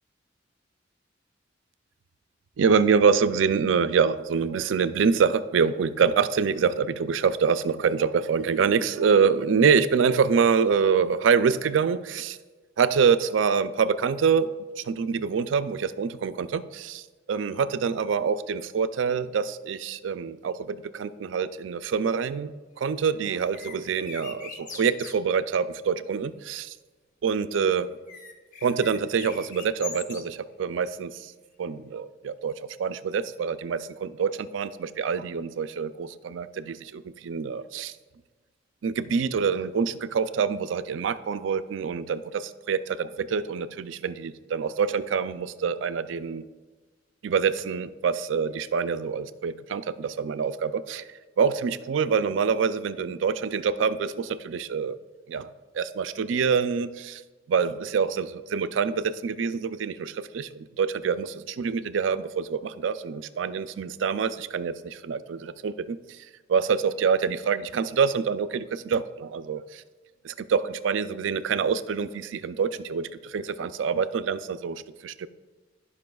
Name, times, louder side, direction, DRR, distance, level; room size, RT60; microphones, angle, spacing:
voice 1, 2.6-12.4 12.8-17.0 17.3-22.5 22.8-26.7 27.2-27.9 28.6-31.3 31.6-32.5 32.8-37.9 38.8-46.4 47.2-51.0 51.4-55.0 55.3-55.5 55.7-57.2 57.5-66.0 66.5-69.8 70.2-75.3, right 6 dB, 90° right, 13 dB, 0.4 m, -26 dB
sound 1, 23.4-25.2 28.1-30.2, left 5 dB, 45° left, 0.9 m, -41 dB
15.5 x 5.4 x 2.3 m, 1.3 s
head